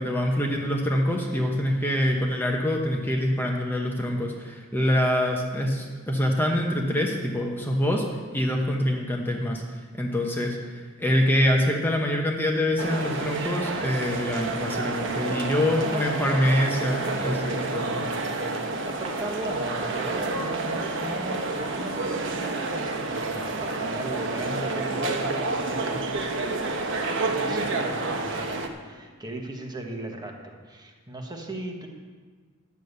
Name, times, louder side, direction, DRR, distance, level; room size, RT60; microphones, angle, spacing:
voice 1, 0.0-8.0 8.3-9.6 9.9-18.1, left 1 dB, 10° left, 0 dB, 1.1 m, -25 dB
sound 1, 12.8-28.7, right 3 dB, 65° right, 1.2 m, -29 dB
voice 2, 18.9-31.9, right 1 dB, 20° right, 1 dB, 1.4 m, -37 dB
11.5 x 7.1 x 8.0 m, 1.5 s
head